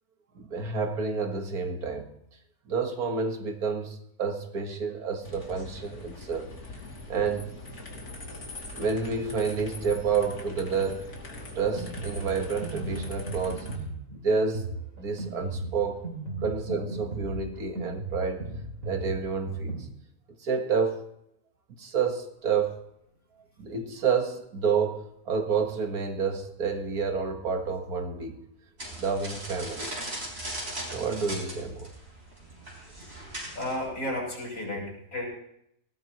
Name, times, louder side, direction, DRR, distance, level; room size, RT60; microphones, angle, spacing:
voice 1, 0.4-2.1 2.7-6.6 7.1-7.5 8.7-11.1 11.5-13.7 14.1-14.6 15.0-16.1 16.4-18.5 18.8-19.9 20.4-21.0 21.8-22.8 23.6-28.4 29.0-30.0 30.9-31.9, right 5 dB, 85° right, 5 dB, 2.1 m, -29 dB
Mechanic stairs noise in London Underground, 5.2-13.8, left 2 dB, 90° left, 3.2 m, -42 dB
Drum kit, 11.5-19.8, right 2 dB, 60° right, 3.2 m, -37 dB
sound 1, 28.8-33.9, right 1 dB, 45° right, 5.4 m, -38 dB
voice 2, 33.5-35.2, left 1 dB, 70° left, -3 dB, 5.8 m, -33 dB
19.5 x 18.0 x 3.1 m, 0.75 s
omnidirectional pair, 1.6 m